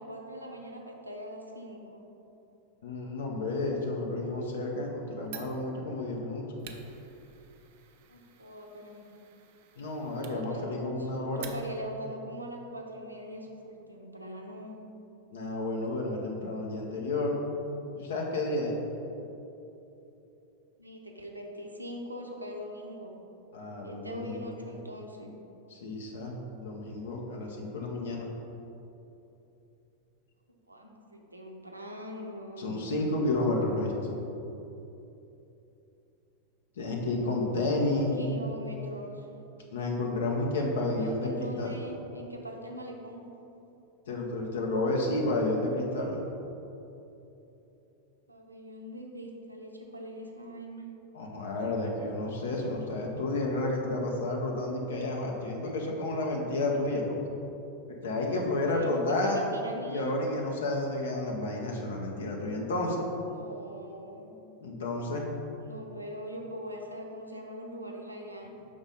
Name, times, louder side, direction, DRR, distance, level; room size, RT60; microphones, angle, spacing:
voice 1, 0.0-2.0 8.1-9.2 10.2-14.8 20.8-23.2 23.8-25.3 30.7-32.8 37.7-39.3 40.6-40.7 41.0-43.2 48.3-50.9 58.3-60.2 63.3-64.3 65.6-68.5, equal, 85° right, 1 dB, 0.6 m, -42 dB
voice 2, 2.8-6.5 9.8-11.5 15.3-17.4 17.9-18.8 23.5-24.5 25.7-28.3 32.6-34.2 36.8-38.2 39.7-41.8 44.1-46.2 51.1-57.2 58.0-59.4 59.9-63.1 64.6-65.3, left 2 dB, 65° left, -1 dB, 0.7 m, -31 dB
Fire, 5.2-12.0, right 8 dB, 50° right, 0.5 m, -51 dB
5.3 x 4.0 x 5.3 m, 3.0 s
figure-of-eight pair, 90°, 0 cm